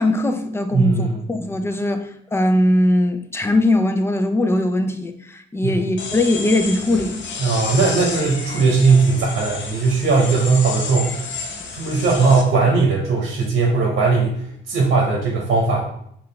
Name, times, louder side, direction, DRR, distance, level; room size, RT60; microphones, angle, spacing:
voice 1, 0.0-7.2, left 1 dB, 10° left, 7 dB, 0.4 m, -20 dB
voice 2, 0.7-1.2 5.6-5.8 7.4-11.3 11.7-14.4 14.7-15.8, right 4 dB, 65° right, -1 dB, 0.9 m, -18 dB
sound 1, 6.0-12.4, left 4 dB, 65° left, 0.6 m, -30 dB
3.9 x 2.4 x 3.2 m, 0.70 s
cardioid pair, 90°, 20 cm